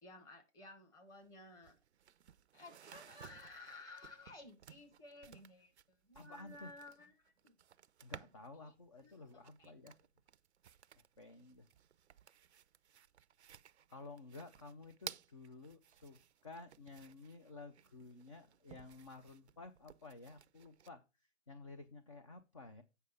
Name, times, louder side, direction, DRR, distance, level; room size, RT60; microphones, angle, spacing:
voice 1, 0.0-1.7 2.5-7.6 8.6-8.7 9.0-9.8, left 2 dB, 10° left, 4 dB, 1.0 m, -56 dB
sound 1, 1.1-1.2 1.5-8.6 9.0-20.9, right 9 dB, 60° right, 0.5 m, -57 dB
voice 2, 6.1-6.7 8.0-10.0 11.0-11.7 13.9-22.8, left 3 dB, 25° left, 8 dB, 0.4 m, -53 dB
8.2 x 5.5 x 5.0 m, 0.27 s
hypercardioid pair, 145°, 38 cm